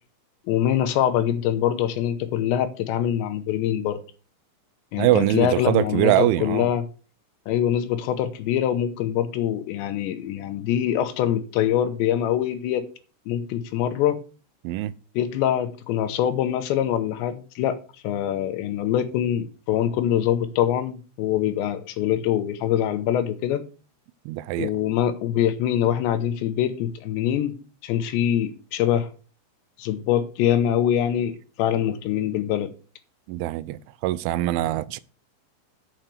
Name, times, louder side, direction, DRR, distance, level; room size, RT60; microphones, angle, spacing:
voice 1, 0.5-4.0 4.9-6.8 7.5-12.9 13.3-14.2 15.2-17.8 18.0-23.6 24.6-27.5 27.8-29.1 29.8-32.7, left 10 dB, 80° left, 3.0 m, -24 dB
voice 2, 5.0-6.7 14.6-14.9 24.3-24.7 33.3-35.0, right 15 dB, 90° right, 3.0 m, -23 dB
9.0 x 5.7 x 6.6 m
omnidirectional pair, 5.4 m